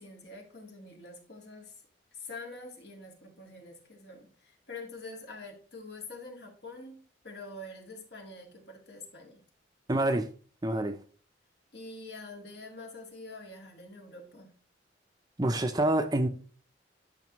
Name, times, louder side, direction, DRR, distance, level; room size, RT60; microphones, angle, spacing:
voice 1, 0.0-1.7 2.1-7.0 7.2-9.4 11.7-14.5, left 2 dB, 60° left, 2.1 m, -46 dB
voice 2, 9.9-10.3 10.6-11.0 15.4-16.3, right 1 dB, 20° right, 0.6 m, -27 dB
10.5 x 5.9 x 3.1 m
head